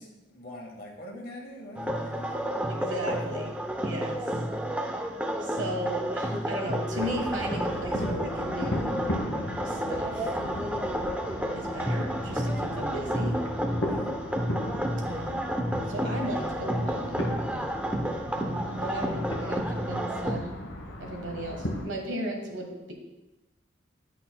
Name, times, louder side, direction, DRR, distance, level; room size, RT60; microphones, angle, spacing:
voice 1, 0.0-2.6 13.9-14.1, left 1 dB, 50° left, 0 dB, 1.3 m, -44 dB
sound 1, 1.8-20.4, equal, 5° right, 0.5 m, -31 dB
voice 2, 2.7-3.6 3.8-4.2 5.4-9.0 9.6-10.4 11.5-13.4 15.1-15.5 15.9-17.4 18.4-20.5 21.0-22.9, right 1 dB, 75° right, 0 dB, 1.5 m, -35 dB
sound 2, 6.9-21.9, left 1 dB, 70° left, 1.0 m, -37 dB
10.5 x 5.7 x 2.2 m, 1.1 s
head